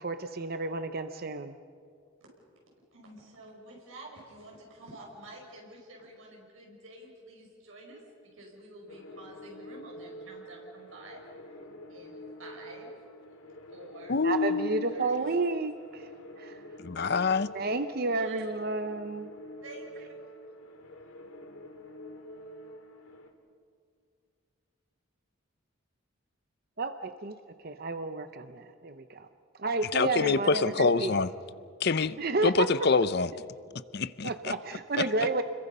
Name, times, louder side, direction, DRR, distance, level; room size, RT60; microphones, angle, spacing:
voice 1, 0.0-1.6 14.2-16.1 16.4-16.6 17.5-19.3 26.8-29.3 29.6-31.1 32.2-32.9 34.2-35.4, right 3 dB, 50° right, 9 dB, 0.7 m, -31 dB
voice 2, 2.9-11.6 11.9-12.9 13.7-14.2 14.9-15.5 16.9-17.4 18.0-18.4 19.6-20.1, right 2 dB, 80° right, -1 dB, 5.5 m, -49 dB
sound 1, 8.9-23.3, equal, 90° left, 2.3 m, -47 dB
voice 3, 14.1-14.9 16.8-17.5 29.9-31.3 31.8-32.2 32.4-33.3 33.9-34.5, left 4 dB, 50° left, 15 dB, 0.7 m, -26 dB
29.5 x 22.0 x 5.5 m, 2.2 s
head